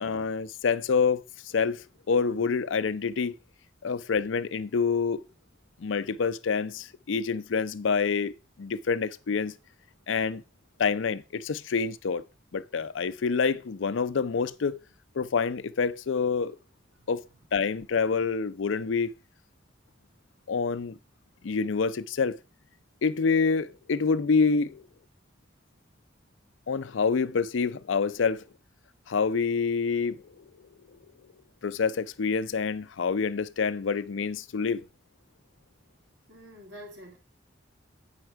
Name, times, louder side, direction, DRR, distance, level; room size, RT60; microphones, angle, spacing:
voice 1, 0.0-3.3 3.8-5.2 5.8-9.5 10.1-10.4 10.8-12.2 12.5-14.8 15.1-16.6 17.1-17.2 17.5-19.1 20.5-21.0 21.4-22.4 23.0-24.8 26.7-28.4 29.1-30.4 31.6-34.8, left 5 dB, 85° left, 0.5 m, -27 dB
voice 2, 36.3-37.2, equal, 80° right, 3.5 m, -46 dB
8.8 x 5.8 x 4.6 m
head